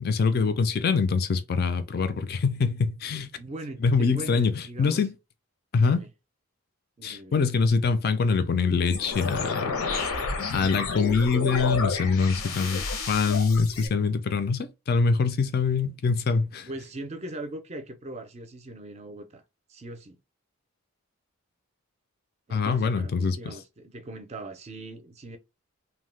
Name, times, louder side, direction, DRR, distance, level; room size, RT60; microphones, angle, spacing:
voice 1, 0.0-3.3 3.8-5.2 5.7-6.0 7.0-10.1 10.5-16.7 22.5-23.5, left 4 dB, 45° left, 0.3 m, -24 dB
voice 2, 3.4-5.0 5.8-6.1 7.0-7.4 16.7-19.4 19.7-20.2 22.5-25.4, right 1 dB, 30° right, 0.4 m, -40 dB
sound 1, 8.9-13.9, left 4 dB, 85° left, 0.6 m, -30 dB
2.7 x 2.1 x 3.2 m
head